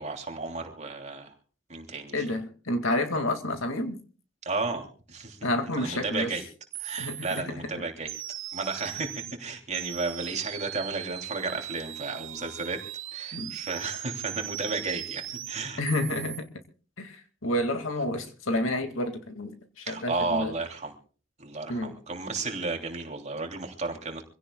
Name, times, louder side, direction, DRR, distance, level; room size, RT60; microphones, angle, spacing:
voice 1, 0.0-1.3 1.7-2.3 4.4-5.4 5.7-6.4 6.8-8.1 8.5-12.8 13.1-15.8 19.8-20.9 21.4-24.2, right 3 dB, 35° right, 3 dB, 3.1 m, -33 dB
voice 2, 2.1-4.0 5.4-6.3 7.0-7.4 13.3-13.5 15.8-16.5 17.0-20.5 21.7-21.9, left 1 dB, 75° left, 7 dB, 2.2 m, -29 dB
sound 1, 6.4-6.5 6.7-7.4 8.1-9.3 9.7-16.4, right 13 dB, 70° right, 1.1 m, -39 dB
26.0 x 16.5 x 2.3 m, 0.39 s
head